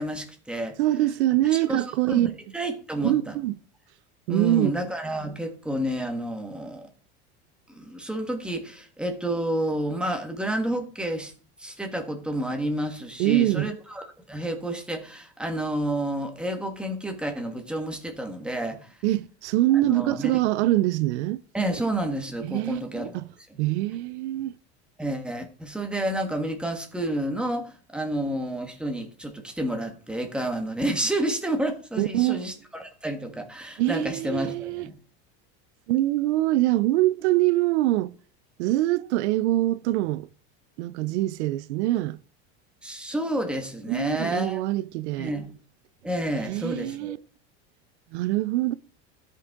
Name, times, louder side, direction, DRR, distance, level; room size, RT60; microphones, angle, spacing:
voice 1, 0.0-0.8 1.5-3.4 4.3-6.9 7.7-11.3 11.6-19.0 19.8-20.4 21.5-23.1 23.5-23.6 25.0-34.9 42.8-44.6 45.2-45.5 46.0-47.2, right 1 dB, 5° right, 1.4 m, -30 dB
voice 2, 0.8-2.3 3.0-3.6 4.3-4.7 13.2-13.7 19.0-21.4 22.5-23.2 23.6-24.5 32.0-32.4 33.8-34.9 35.9-38.1 38.6-40.3 40.8-42.2 43.9-45.3 46.5-47.2 48.1-48.7, right 16 dB, 85° right, 0.6 m, -24 dB
13.5 x 5.5 x 3.6 m
supercardioid pair, 130°, 33 cm